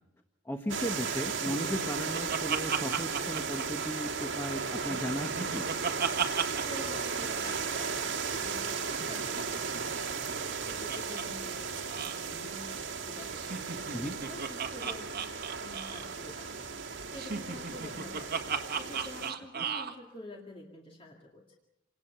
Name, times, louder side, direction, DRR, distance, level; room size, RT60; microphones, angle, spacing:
voice 1, 0.4-5.7 13.9-14.2 19.6-19.7, equal, 15° left, 5 dB, 1.3 m, -36 dB
sound 1, 0.7-19.3, right 5 dB, 70° right, 2.0 m, -35 dB
Laughter, 1.5-4.4 4.7-6.8 7.1-7.2 7.4-7.6 8.9-11.2 11.5-11.6 11.9-12.2 13.3-16.1 17.2-19.9, right 6 dB, 55° right, 1.7 m, -36 dB
voice 2, 6.6-10.2 10.7-15.3 15.6-18.3 18.6-21.6, left 1 dB, 30° left, 0 dB, 2.2 m, -48 dB
27.5 x 19.0 x 6.8 m, 0.94 s
head